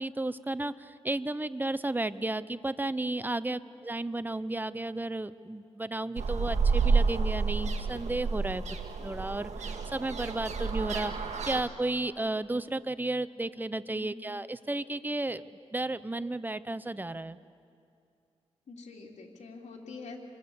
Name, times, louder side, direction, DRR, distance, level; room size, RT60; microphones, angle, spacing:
voice 1, 0.0-8.6 9.0-11.1 11.4-17.4, right 2 dB, 15° right, 14 dB, 0.8 m, -33 dB
sound 1, 6.2-11.6, right 4 dB, 75° right, 1.9 m, -29 dB
voice 2, 13.9-14.2 18.7-20.2, left 4 dB, 80° left, -1 dB, 2.8 m, -45 dB
26.5 x 24.0 x 7.1 m, 2.4 s
cardioid pair, 80°, 12 cm